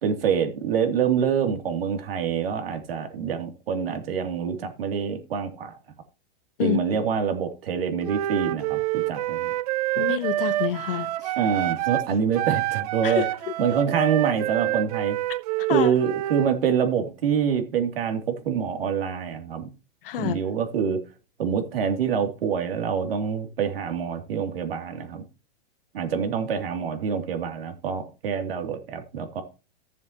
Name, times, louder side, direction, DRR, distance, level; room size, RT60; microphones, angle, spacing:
voice 1, 0.0-5.8 6.6-9.5 11.4-13.2 13.6-15.2 15.7-19.7 20.2-21.0 21.4-25.2 25.9-29.4, right 7 dB, 80° right, 3.0 m, -26 dB
Wind instrument woodwind instrument, 8.0-12.1 12.3-16.5, right 16 dB, 45° right, 0.4 m, -27 dB
voice 2, 10.0-11.3 13.0-13.5 15.7-15.9 20.0-20.4, left 11 dB, 70° left, 1.3 m, -28 dB
14.5 x 7.3 x 3.0 m
supercardioid pair, 160°, 29 cm